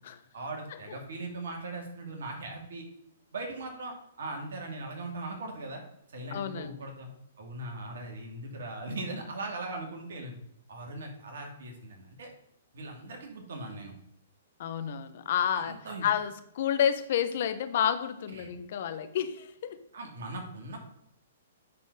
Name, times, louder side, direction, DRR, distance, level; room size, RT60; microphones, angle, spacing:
voice 1, 0.3-2.8 3.3-5.8 6.1-7.1 7.4-10.4 10.7-12.3 12.7-13.9 15.5-16.1 18.3-18.5 19.9-20.9, right 2 dB, 70° right, 2 dB, 2.5 m, -39 dB
voice 2, 6.3-6.8 14.6-15.7 16.0-19.8, left 9 dB, 55° left, 11 dB, 0.9 m, -30 dB
9.6 x 4.4 x 5.3 m, 0.77 s
hypercardioid pair, 125°, 0 cm